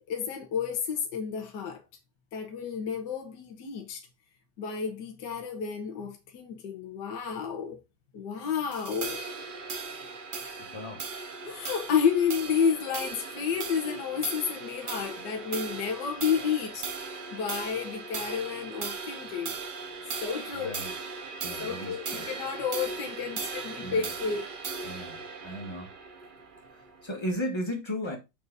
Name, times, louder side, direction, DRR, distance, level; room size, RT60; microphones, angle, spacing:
voice 1, 0.1-1.8 2.3-4.0 4.6-7.8 8.1-9.2 11.4-16.9 17.3-19.6 20.2-20.8 21.6-24.4, left 7 dB, 65° left, 1.9 m, -31 dB
sound 1, 8.7-27.3, right 4 dB, 50° right, 0.6 m, -38 dB
voice 2, 10.7-11.0 20.5-20.9 21.4-22.3 23.8-24.1 24.8-25.9 26.7-28.2, equal, 15° left, 1.5 m, -36 dB
6.7 x 4.4 x 4.0 m
omnidirectional pair, 2.0 m